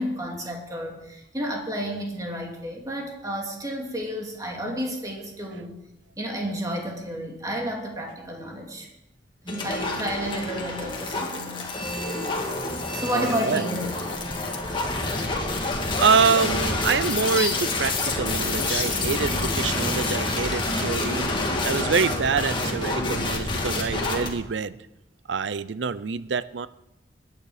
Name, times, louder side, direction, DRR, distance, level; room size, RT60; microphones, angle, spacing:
voice 1, 0.0-5.7 6.2-8.9 9.4-11.7 12.9-13.8, equal, 20° right, 0 dB, 2.5 m, -31 dB
sound 1, 9.5-24.3, left 2 dB, 25° left, 2.0 m, -27 dB
voice 2, 13.1-13.6 16.0-21.3 21.6-24.8 25.3-26.7, right 5 dB, 80° right, 17 dB, 0.6 m, -25 dB
20.0 x 9.5 x 5.0 m, 0.89 s
head